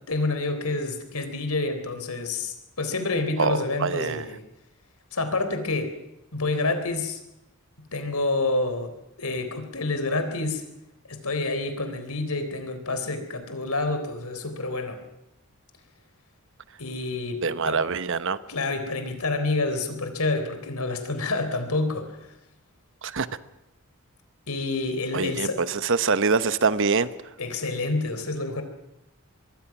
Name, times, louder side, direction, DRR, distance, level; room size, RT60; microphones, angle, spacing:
voice 1, 0.1-4.4 5.1-5.9 6.3-7.2 7.9-8.9 9.2-10.6 11.1-15.0 16.8-17.8 18.5-22.3 24.5-25.6 27.4-28.6, left 3 dB, 80° left, 8 dB, 3.9 m, -28 dB
voice 2, 3.4-4.3 17.4-18.4 23.0-23.3 25.1-27.1, right 4 dB, 60° right, 14 dB, 1.0 m, -24 dB
25.0 x 22.0 x 6.0 m, 0.92 s
head